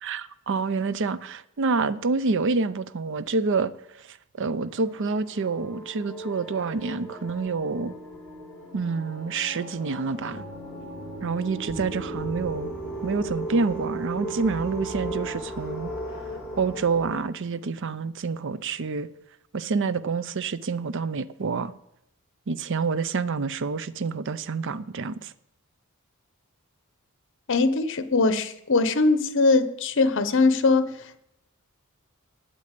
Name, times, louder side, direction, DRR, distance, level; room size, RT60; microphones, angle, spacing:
voice 1, 0.0-3.7 4.0-7.9 8.7-10.4 11.2-12.7 13.0-15.9 16.6-19.1 19.5-21.7 22.5-25.3, right 4 dB, 60° right, 0.5 m, -27 dB
sound 1, 4.6-17.2, right 1 dB, 5° left, 4.5 m, -36 dB
voice 2, 27.5-31.0, left 3 dB, 60° left, 0.8 m, -21 dB
8.9 x 8.4 x 8.2 m
head